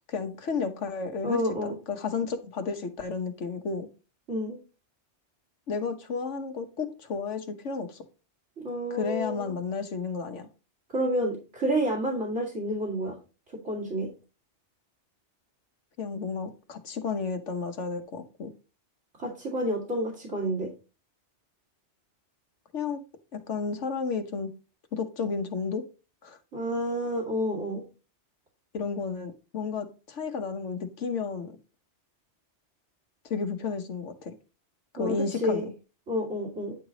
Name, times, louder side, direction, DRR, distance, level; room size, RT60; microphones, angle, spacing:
voice 1, 0.1-3.9 5.7-8.0 8.9-10.5 16.0-18.5 22.7-23.0 23.3-24.5 24.9-25.8 26.2-26.4 28.7-31.6 33.2-34.3 34.9-35.6, left 5 dB, 85° left, 1.4 m, -32 dB
voice 2, 1.2-1.8 4.3-4.6 8.6-9.5 10.9-13.1 13.6-14.1 19.2-20.7 26.5-27.8 35.0-35.7 36.1-36.8, equal, 80° right, 2.6 m, -29 dB
9.9 x 4.9 x 3.9 m
omnidirectional pair, 1.2 m